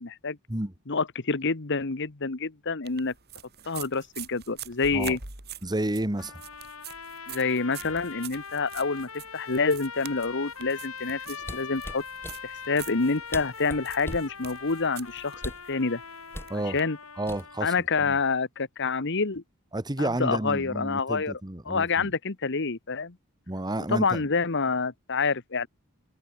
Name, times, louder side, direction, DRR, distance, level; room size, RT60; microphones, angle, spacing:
voice 1, 0.0-0.4 0.9-3.1 3.7-5.2 7.3-12.0 12.4-15.4 15.7-16.0 16.7-17.0 17.6-19.4 20.0-21.3 21.7-23.1 23.9-25.7, left 4 dB, 55° left, 1.3 m, -27 dB
sound 1, 2.8-16.8, right 9 dB, 50° right, 4.2 m, -46 dB
voice 2, 5.6-6.4 16.5-16.8 17.2-17.7 18.0-18.2 19.7-22.1 23.5-24.3, right 1 dB, 20° right, 1.5 m, -31 dB
sound 2, 6.2-17.7, left 6 dB, 80° left, 7.4 m, -42 dB
sound 3, 11.4-12.4 13.0-13.1 13.3-14.3 15.4-15.7 16.3-16.6 17.3-17.7 18.1-18.4, left 1 dB, 10° left, 2.5 m, -38 dB
head